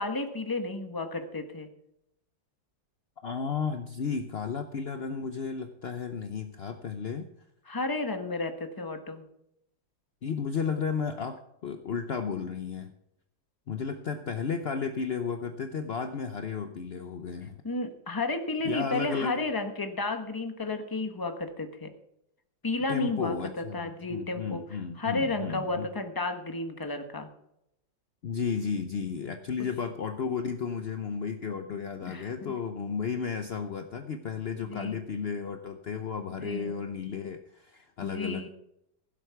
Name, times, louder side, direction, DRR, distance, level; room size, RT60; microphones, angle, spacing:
voice 1, 0.0-1.7 7.7-9.2 17.6-21.9 22.6-23.4 23.7-24.6 25.0-27.3 32.1-32.5 34.6-35.0 36.3-36.7 38.0-38.5, left 2 dB, 15° left, 6 dB, 1.0 m, -32 dB
voice 2, 3.2-7.3 10.2-12.9 13.7-17.6 18.6-19.4 22.9-25.9 28.2-38.5, left 6 dB, 60° left, 7 dB, 0.6 m, -33 dB
16.0 x 8.0 x 5.8 m, 0.79 s
omnidirectional pair, 2.1 m